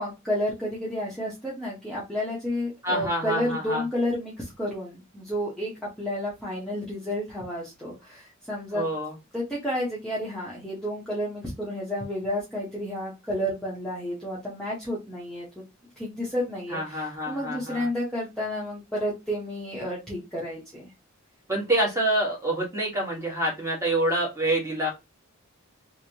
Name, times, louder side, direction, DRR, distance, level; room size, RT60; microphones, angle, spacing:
voice 1, 0.0-8.8 9.3-15.6 16.0-20.9, left 1 dB, 5° left, -7 dB, 0.8 m, -31 dB
voice 2, 2.8-3.8 8.7-9.1 16.7-17.9 21.5-24.9, right 1 dB, 15° right, -2 dB, 1.2 m, -27 dB
3.1 x 2.6 x 2.8 m, 0.24 s
head